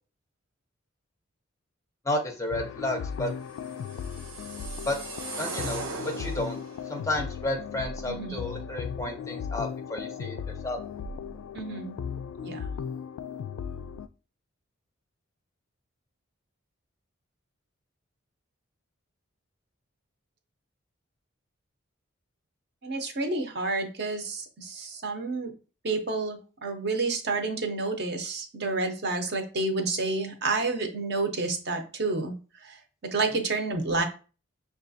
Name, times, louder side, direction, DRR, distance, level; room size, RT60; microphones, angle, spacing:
voice 1, 2.0-3.3 4.9-5.0 5.4-6.6 6.9-10.4 10.6-10.8, left 1 dB, 15° left, 4 dB, 0.5 m, -32 dB
sound 1, 2.5-14.1, left 6 dB, 90° left, 0.3 m, -37 dB
sound 2, 3.6-6.8, right 3 dB, 85° right, 0.8 m, -38 dB
voice 2, 8.1-8.4 11.5-12.0 12.4-12.7 22.8-25.5 25.8-32.3 32.6-32.8 33.1-34.0, right 3 dB, 50° right, 4 dB, 0.6 m, -29 dB
6.0 x 2.3 x 2.6 m, 0.35 s
head